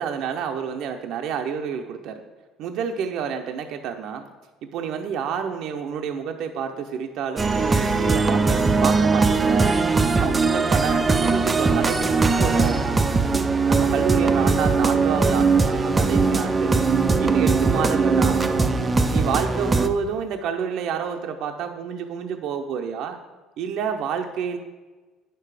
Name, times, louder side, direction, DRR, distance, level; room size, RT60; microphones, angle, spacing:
voice 1, 0.0-2.2 2.6-4.3 4.6-9.7 10.2-12.9 13.7-16.8 17.2-18.5 19.1-23.2 23.6-24.6, right 7 dB, 65° right, 4 dB, 0.7 m, -29 dB
sound 1, 7.4-19.9, right 4 dB, 20° right, 0.6 m, -20 dB
9.3 x 6.8 x 4.9 m, 1.3 s
cardioid pair, 120°, 0 cm